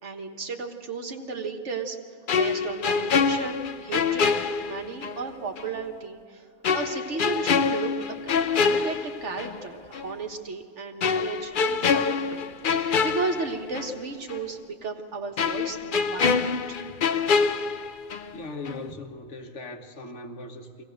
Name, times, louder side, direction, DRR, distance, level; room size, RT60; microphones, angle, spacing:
voice 1, 0.0-2.0 2.4-4.4 4.6-7.9 8.7-12.5 12.7-16.8, right 4 dB, 85° right, 4 dB, 1.8 m, -34 dB
sound 1, 2.3-5.2 5.6-5.7 6.6-9.6 9.9-10.1 11.0-14.0 14.3-14.4 15.4-18.4 18.7-18.9, left 5 dB, 50° left, 0.8 m, -25 dB
voice 2, 18.3-20.8, left 2 dB, 80° left, 5 dB, 1.6 m, -39 dB
23.0 x 17.5 x 6.6 m, 2.4 s
omnidirectional pair, 1.2 m